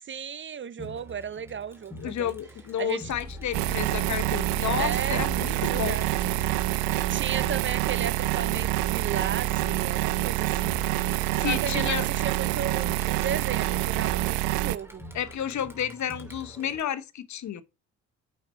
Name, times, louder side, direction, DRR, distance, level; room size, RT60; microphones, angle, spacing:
voice 1, 0.0-2.3 2.8-3.1 4.8-6.1 7.1-10.8 11.4-15.0, right 7 dB, 35° right, 0.5 m, -34 dB
Crowd, 0.8-16.8, right 1 dB, 5° right, 2.8 m, -45 dB
voice 2, 2.0-6.0 11.4-12.1 15.1-17.6, left 10 dB, 55° left, 1.0 m, -31 dB
sound 1, 3.1-15.7, left 3 dB, 10° left, 1.2 m, -46 dB
sound 2, 3.5-14.8, right 18 dB, 85° right, 0.6 m, -27 dB
8.8 x 5.7 x 4.3 m
supercardioid pair, 70°, 34 cm